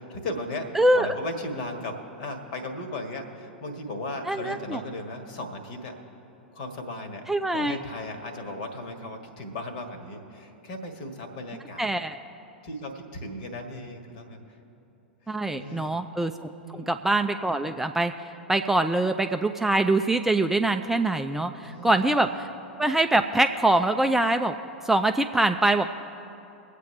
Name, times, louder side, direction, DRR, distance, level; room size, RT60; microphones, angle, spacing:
voice 1, 0.0-0.7 0.9-5.9 6.5-7.2 7.5-11.9 12.6-14.4 15.3-16.0 16.6-16.9 21.6-21.9, left 2 dB, 50° left, 6 dB, 1.6 m, -36 dB
voice 2, 0.8-1.1 4.3-4.8 7.3-7.8 11.8-12.2 15.3-16.3 16.7-18.1 18.5-22.5 22.8-24.6 24.9-25.9, right 2 dB, 5° right, 6 dB, 0.4 m, -23 dB
23.0 x 8.3 x 3.3 m, 2.9 s
figure-of-eight pair, 95°, 6 cm